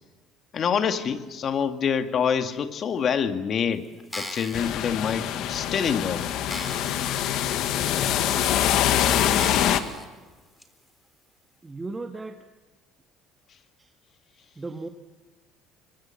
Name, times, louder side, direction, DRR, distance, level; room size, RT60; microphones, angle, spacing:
voice 1, 0.5-3.9 4.1-6.3, left 7 dB, 45° left, 8 dB, 2.1 m, -26 dB
sound 1, 4.0-4.7 5.4-5.5 5.9-6.0 6.5-7.2 7.6-7.7 8.5-8.6 9.4-10.1 10.6-10.7, left 1 dB, 10° left, 3.9 m, -37 dB
sound 2, 4.5-9.8, left 11 dB, 65° left, 1.8 m, -24 dB
voice 2, 11.6-12.4 13.8-13.9 14.6-14.9, right 3 dB, 15° right, 5 dB, 1.7 m, -35 dB
26.0 x 23.5 x 7.3 m, 1.3 s
supercardioid pair, 85°, 0 cm